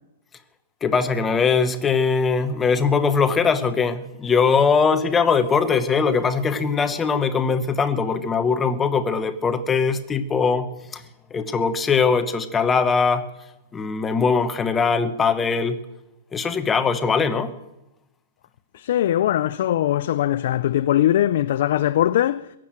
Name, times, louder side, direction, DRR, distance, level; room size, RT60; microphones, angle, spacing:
voice 1, 0.8-11.0 11.3-13.3 13.7-15.8 16.3-17.5, left 5 dB, 10° left, 0.9 m, -21 dB
voice 2, 18.7-22.5, left 12 dB, 55° left, 0.5 m, -21 dB
21.5 x 7.7 x 8.8 m
hypercardioid pair, 165°, 0 cm